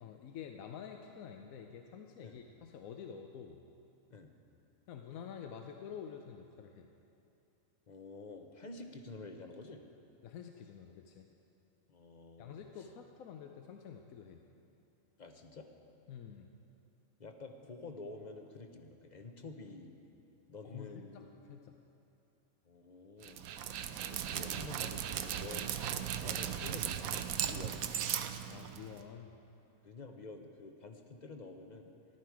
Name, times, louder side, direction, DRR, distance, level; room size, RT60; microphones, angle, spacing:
voice 1, 0.0-3.6 4.9-6.9 10.2-11.3 12.4-14.4 16.1-16.5 20.6-21.8 24.3-24.4 28.5-29.3, left 7 dB, 85° left, 4 dB, 1.1 m, -48 dB
voice 2, 7.9-9.9 11.9-12.6 15.2-15.7 17.2-19.9 20.5-21.6 22.6-23.7 24.1-27.8 29.8-31.9, left 3 dB, 40° left, 5 dB, 0.7 m, -49 dB
Dog, 23.2-29.0, right 9 dB, 85° right, 1.0 m, -37 dB
14.5 x 11.5 x 4.7 m, 2.8 s
omnidirectional pair, 1.4 m